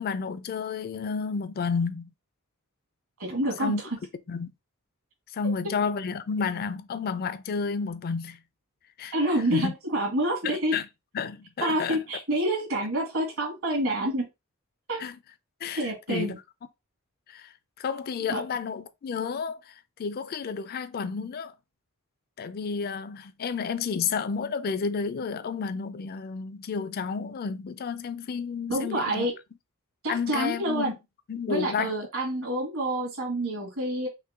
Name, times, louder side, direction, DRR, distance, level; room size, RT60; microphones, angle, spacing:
voice 1, 0.0-2.1 3.6-3.8 4.3-4.5 5.3-8.4 9.0-9.1 9.5-9.7 10.4-10.8 11.1-12.0 15.0-15.2 15.6-16.3 17.3-21.5 22.4-29.3 30.1-31.0 31.3-31.9, left 5 dB, 45° left, 0.4 m, -31 dB
voice 2, 3.2-3.9 5.4-5.5 9.1-10.8 11.6-14.3 14.9-15.0 15.8-16.4 18.3-18.4 28.7-29.3 30.0-30.9 31.5-34.1, right 1 dB, 65° right, 2.2 m, -28 dB
5.6 x 2.2 x 3.6 m
head